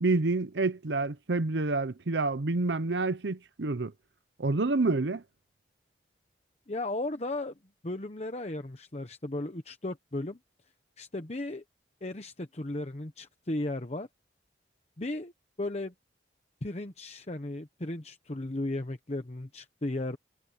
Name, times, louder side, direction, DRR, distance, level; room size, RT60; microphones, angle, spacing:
voice 1, 0.0-3.9 4.4-5.2, right 3 dB, 80° right, 0.8 m, -28 dB
voice 2, 6.7-7.5 7.8-10.4 11.0-11.6 12.0-14.1 15.0-15.3 15.6-15.9 16.6-20.2, left 2 dB, 35° left, 1.0 m, -35 dB
head